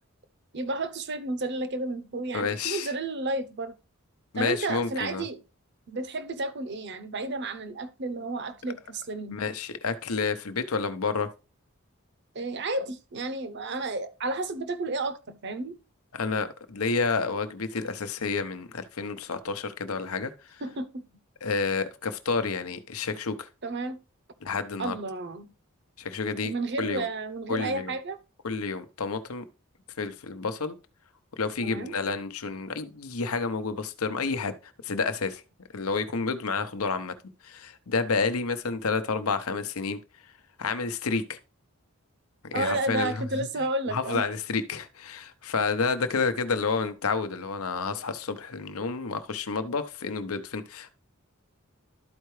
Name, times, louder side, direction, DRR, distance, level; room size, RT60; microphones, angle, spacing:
voice 1, 0.5-3.7 4.3-5.4 5.9-9.4 12.3-15.8 20.6-21.0 23.6-24.0 24.8-25.5 26.4-28.2 31.6-32.0 42.5-44.2, right 2 dB, 55° right, 0.8 m, -32 dB
voice 2, 2.3-2.9 4.3-5.3 9.3-11.3 16.1-20.3 21.4-23.5 24.4-25.0 26.0-26.5 26.8-27.1 27.5-27.9 28.4-29.4 30.0-30.8 31.4-34.5 34.8-35.4 35.7-37.1 37.4-40.0 40.6-41.4 42.4-43.2 43.9-50.9, left 4 dB, 85° left, 0.8 m, -29 dB
12.5 x 4.6 x 3.2 m
head